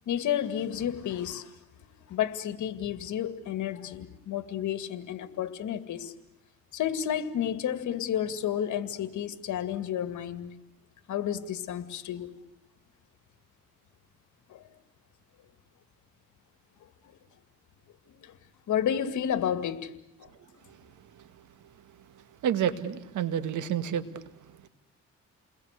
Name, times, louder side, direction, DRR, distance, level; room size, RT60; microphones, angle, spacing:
voice 1, 0.1-1.5 2.1-6.1 6.7-10.5 11.1-12.3 14.5-14.6 18.2-18.3 18.7-19.9, left 10 dB, 75° left, 2.2 m, -31 dB
voice 2, 22.4-24.1 24.6-24.7, right 9 dB, 80° right, 2.1 m, -29 dB
30.0 x 21.5 x 8.3 m
cardioid pair, 90°, 30 cm